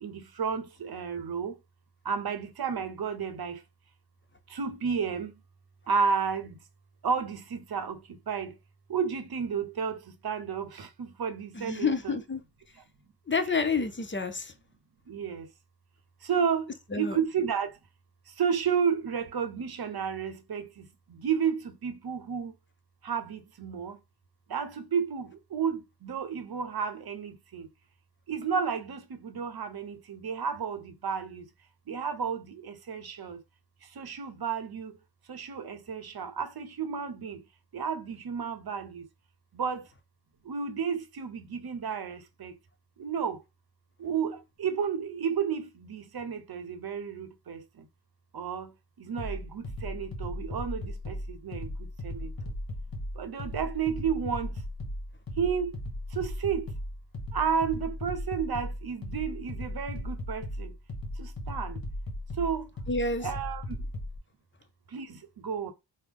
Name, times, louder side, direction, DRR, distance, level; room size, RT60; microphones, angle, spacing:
voice 1, 0.0-1.5 2.1-3.6 4.5-5.3 5.9-6.5 7.0-8.0 8.3-8.5 8.9-10.0 10.2-12.2 15.1-15.5 16.3-16.7 17.0-17.7 18.4-20.8 21.2-22.5 23.0-24.0 24.5-27.6 28.3-31.4 31.9-33.4 34.0-34.9 35.3-37.4 37.7-39.0 39.5-39.8 40.5-42.5 43.0-43.4 44.0-47.6 48.3-48.7 49.0-51.7 52.0-52.3 53.2-54.5 55.4-55.7 56.2-56.7 57.3-60.7 61.2-61.8 62.4-62.6 63.2-63.6 64.9-65.7, right 6 dB, 55° right, 0.7 m, -32 dB
voice 2, 11.5-12.4 13.3-14.5 16.9-17.2 62.9-63.3, left 4 dB, 25° left, 0.6 m, -29 dB
sound 1, 49.2-64.2, left 1 dB, 50° left, 1.0 m, -37 dB
3.5 x 2.1 x 3.4 m
cardioid pair, 50°, 44 cm